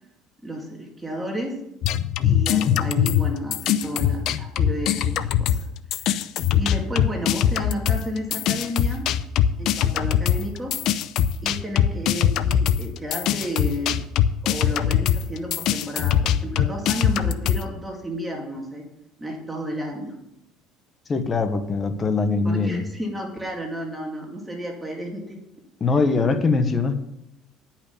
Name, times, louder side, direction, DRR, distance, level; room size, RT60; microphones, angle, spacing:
voice 1, 0.4-1.6 2.2-5.7 6.0-6.2 6.6-9.1 9.6-10.8 11.4-14.0 14.4-18.9 19.2-20.1 22.4-25.4, equal, 10° right, 1 dB, 2.3 m, -32 dB
sound 1, 1.8-5.7 5.9-17.6, left 10 dB, 65° left, 0.5 m, -22 dB
voice 2, 21.1-22.8 25.8-27.0, left 4 dB, 30° left, 9 dB, 1.1 m, -22 dB
10.5 x 5.8 x 6.9 m, 0.84 s
cardioid pair, 105°, 0 cm